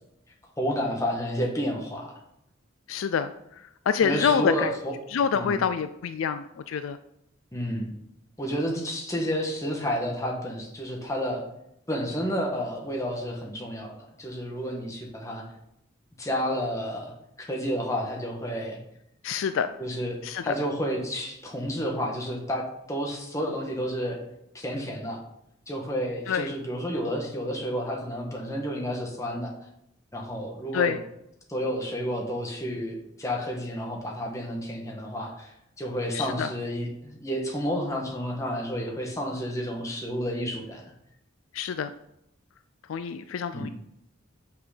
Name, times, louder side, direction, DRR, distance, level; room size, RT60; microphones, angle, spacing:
voice 1, 0.6-2.1 4.0-5.0 5.3-5.6 7.5-7.9 8.4-11.4 11.9-15.5 16.2-17.1 17.4-18.8 19.8-20.2 20.4-24.2 24.5-25.2 25.7-29.5 30.1-31.0 31.5-35.5 35.8-40.8 43.5-43.7, equal, 15° left, 0 dB, 1.3 m, -30 dB
voice 2, 2.9-3.3 3.9-4.7 5.1-7.0 19.2-19.7 20.2-20.5 26.3-26.5 30.7-31.0 36.1-36.5 41.5-41.9 42.9-43.7, left 7 dB, 85° left, 11 dB, 0.4 m, -26 dB
6.2 x 5.8 x 5.0 m, 0.79 s
head